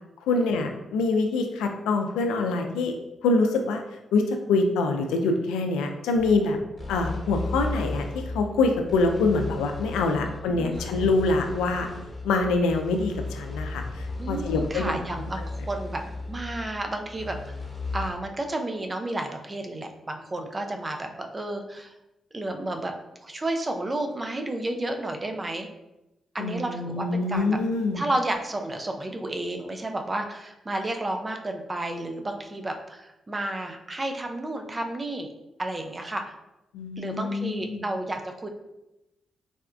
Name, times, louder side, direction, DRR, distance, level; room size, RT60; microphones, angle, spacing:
voice 1, 0.3-2.9 3.2-3.8 4.1-6.6 6.9-11.9 12.2-15.0 26.4-28.0 36.7-37.8, left 3 dB, 90° left, 4 dB, 0.3 m, -25 dB
sound 1, 6.2-18.1, left 2 dB, 35° left, 1.0 m, -35 dB
voice 2, 10.2-10.9 14.2-16.0 16.3-17.4 17.9-21.9 22.3-22.9 23.2-25.7 26.3-27.6 27.9-35.3 35.6-36.3 37.0-38.5, right 1 dB, 30° right, 4 dB, 0.5 m, -31 dB
4.1 x 2.4 x 2.3 m, 0.94 s
supercardioid pair, 50°, 0 cm